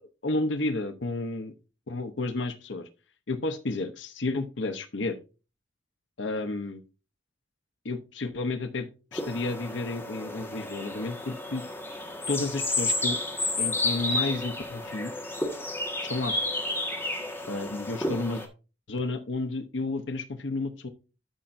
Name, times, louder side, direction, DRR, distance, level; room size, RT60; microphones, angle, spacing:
voice 1, 0.0-1.5 1.9-2.9 3.3-5.2 6.2-6.8 7.8-11.6 12.3-13.2 13.6-15.1 16.0-16.4 17.5-18.4 18.9-20.9, left 2 dB, 75° left, 8 dB, 0.8 m, -31 dB
sound 1, 9.1-18.5, left 2 dB, 10° left, 1.5 m, -31 dB
12.5 x 5.7 x 2.6 m, 0.32 s
head